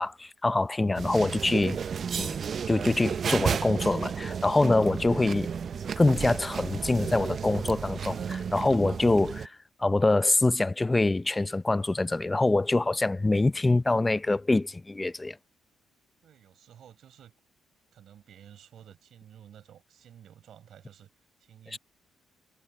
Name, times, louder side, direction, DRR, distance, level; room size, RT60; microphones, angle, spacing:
voice 1, 0.0-1.8 2.2-2.4 2.7-5.5 6.0-15.4 21.7-21.8, left 2 dB, 15° left, 0.5 m, -25 dB
sound 1, 1.0-9.5, right 7 dB, 50° right, 0.4 m, -32 dB
voice 2, 16.2-17.3 17.9-21.8, right 10 dB, 70° right, 5.2 m, -53 dB
cardioid pair, 90°, 0 cm